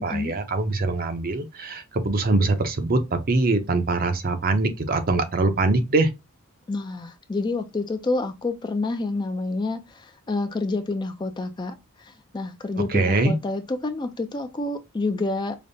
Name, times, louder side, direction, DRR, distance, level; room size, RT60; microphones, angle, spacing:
voice 1, 0.0-3.0 3.3-6.1 12.9-13.3, right 3 dB, 40° right, 0.6 m, -23 dB
voice 2, 6.7-9.8 10.3-11.7 12.3-15.6, left 3 dB, 20° left, 0.3 m, -28 dB
5.0 x 2.1 x 2.6 m
head